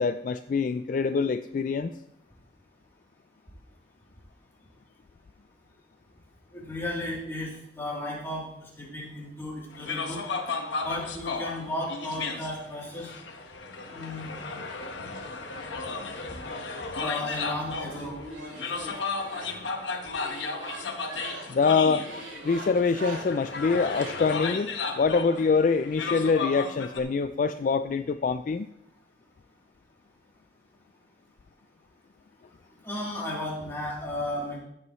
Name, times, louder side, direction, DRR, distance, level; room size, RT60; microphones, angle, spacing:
voice 1, 0.0-1.9 21.5-22.0 22.4-24.7 25.0-28.7, left 5 dB, 45° left, 10 dB, 0.3 m, -25 dB
voice 2, 6.5-10.2 10.8-13.1 13.9-14.3 17.0-18.1 32.8-34.6, left 1 dB, 15° left, -5 dB, 3.1 m, -34 dB
sound 1, 9.7-27.0, left 4 dB, 80° left, 1.2 m, -35 dB
sound 2, 12.7-13.5 14.3-15.5 15.8-24.1, right 1 dB, 85° right, 3.0 m, -43 dB
14.5 x 8.3 x 3.1 m, 0.78 s
head